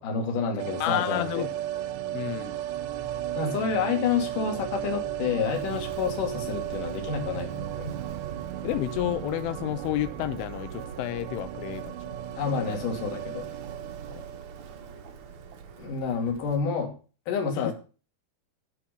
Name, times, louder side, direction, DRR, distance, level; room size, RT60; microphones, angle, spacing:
voice 1, 0.0-1.5 3.4-7.9 12.3-13.5 15.8-16.9 17.3-17.7, left 6 dB, 50° left, 3 dB, 3.8 m, -29 dB
sound 1, 0.6-15.5 15.7-15.8, right 12 dB, 85° right, 3.4 m, -35 dB
voice 2, 0.8-1.5 2.1-2.6 8.6-12.2 12.5-12.8 14.1-14.3 17.6-17.7, left 15 dB, 85° left, 12 dB, 3.3 m, -31 dB
Walk footsteps, 5.4-16.7, right 6 dB, 60° right, 2.1 m, -44 dB
16.0 x 5.8 x 7.0 m, 0.36 s
omnidirectional pair, 5.5 m